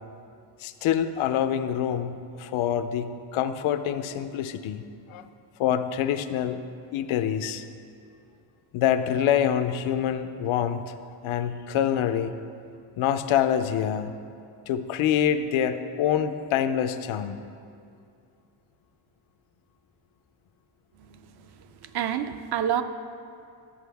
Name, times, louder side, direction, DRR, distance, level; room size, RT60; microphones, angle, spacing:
voice 1, 0.6-4.8 5.1-5.2 5.6-6.6 6.9-7.6 8.7-10.9 11.2-12.3 13.0-14.2 14.7-17.4, left 9 dB, 90° left, 10 dB, 0.6 m, -26 dB
voice 2, 21.8-22.8, right 9 dB, 55° right, 10 dB, 0.5 m, -28 dB
11.5 x 7.6 x 3.4 m, 2.4 s
cardioid pair, 160°, 47 cm